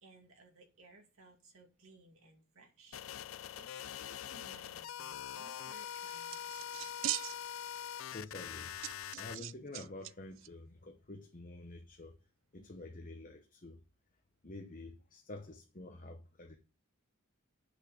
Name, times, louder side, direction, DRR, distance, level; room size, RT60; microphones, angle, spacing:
voice 1, 0.0-6.9, right 2 dB, 85° right, 2.3 m, -61 dB
sound 1, 2.9-9.4, left 10 dB, 75° left, 0.4 m, -44 dB
fixing a metal plate, 6.0-7.7 8.0-8.1 8.8-10.1 10.4-10.5, right 14 dB, 65° right, 0.4 m, -40 dB
voice 2, 8.1-8.7 9.1-12.2 12.5-13.8 14.4-16.6, left 2 dB, 40° left, 1.0 m, -48 dB
8.3 x 6.5 x 5.0 m
head